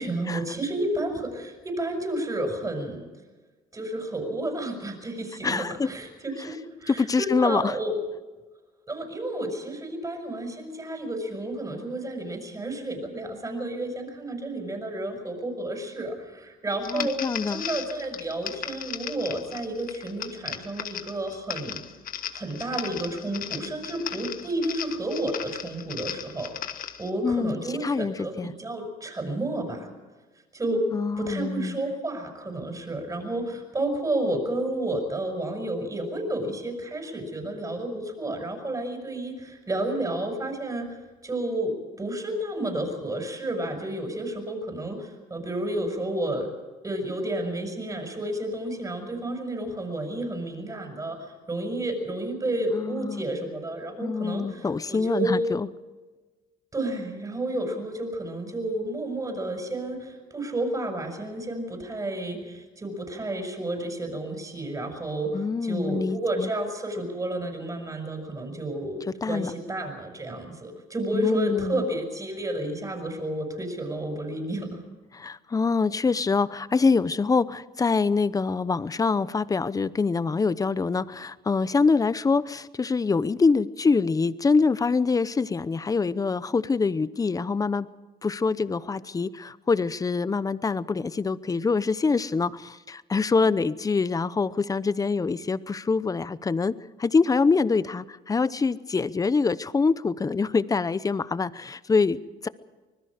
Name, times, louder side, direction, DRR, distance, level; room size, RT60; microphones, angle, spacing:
voice 1, 0.0-3.0 3.7-7.9 8.9-17.2 17.5-21.8 22.3-26.6 27.0-29.9 30.5-30.8 31.2-41.0 41.2-46.5 46.8-55.5 56.7-74.8, right 1 dB, 20° right, 4 dB, 6.5 m, -31 dB
voice 2, 5.4-5.9 6.9-7.8 16.9-17.6 27.2-28.5 30.9-31.8 52.7-53.2 54.0-55.7 65.3-66.5 69.2-69.5 71.1-71.8 75.1-87.9 88.2-96.7 97.0-102.5, left 4 dB, 20° left, 16 dB, 0.8 m, -25 dB
sound 1, 16.8-27.1, left 9 dB, 55° left, 1.4 m, -37 dB
25.0 x 20.5 x 5.1 m, 1.3 s
cardioid pair, 110°, 17 cm